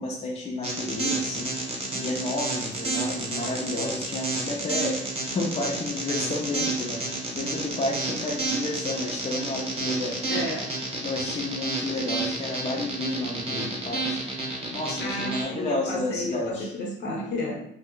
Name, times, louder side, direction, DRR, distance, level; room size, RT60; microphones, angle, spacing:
voice 1, 0.0-5.0 5.3-7.0 7.3-10.2 11.0-14.2 14.7-16.7, left 2 dB, 30° left, -2 dB, 0.6 m, -31 dB
sound 1, 0.6-15.4, right 2 dB, 30° right, 1.0 m, -30 dB
voice 2, 10.3-10.7 15.0-17.6, left 1 dB, 65° left, -1 dB, 0.9 m, -31 dB
2.4 x 2.1 x 3.7 m, 0.72 s
cardioid pair, 90°, 20 cm